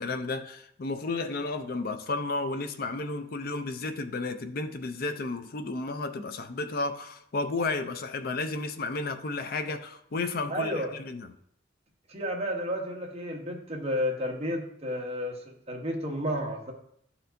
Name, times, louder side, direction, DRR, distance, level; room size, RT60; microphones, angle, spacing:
voice 1, 0.0-11.3, left 3 dB, 50° left, 0.5 m, -32 dB
voice 2, 10.5-10.9 12.1-16.7, equal, 35° right, 1.1 m, -32 dB
12.5 x 4.3 x 2.6 m
head